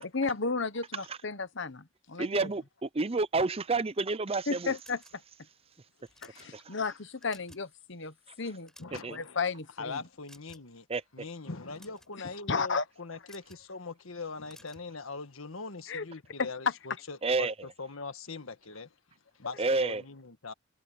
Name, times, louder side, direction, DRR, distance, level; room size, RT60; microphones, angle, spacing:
voice 1, 0.0-2.5 4.5-5.2 6.2-8.7 9.1-10.0 12.5-12.8 15.9-16.0 16.4-16.5, left 4 dB, 60° left, 1.2 m, -33 dB
voice 2, 2.2-4.7 6.5-6.7 9.0-9.2 10.9-11.0 17.2-17.5 19.6-20.0, right 3 dB, 30° right, 0.7 m, -29 dB
sound 1, 4.8-5.5 6.0-6.5 7.0-7.7 8.0-8.2 8.5-9.3 10.3-10.8 11.6-12.1 13.2-13.7 14.5-14.9, left 1 dB, 5° left, 7.4 m, -56 dB
voice 3, 8.8-9.4 9.8-10.9 11.1-18.9 19.3-20.5, left 4 dB, 90° left, 1.6 m, -41 dB
head